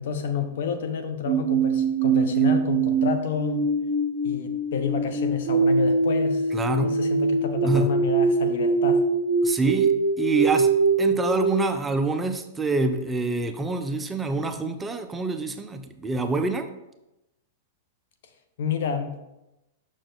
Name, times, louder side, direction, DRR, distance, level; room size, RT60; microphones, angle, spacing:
voice 1, 0.0-3.6 4.2-9.0 18.6-19.2, left 6 dB, 70° left, 8 dB, 0.8 m, -29 dB
sound 1, 1.3-11.6, right 4 dB, 60° right, 0.8 m, -23 dB
voice 2, 6.5-6.9 7.6-8.0 9.4-10.7 11.0-16.7, right 3 dB, 10° right, 7 dB, 0.4 m, -26 dB
6.2 x 4.5 x 4.0 m, 0.93 s
hypercardioid pair, 135°, 0 cm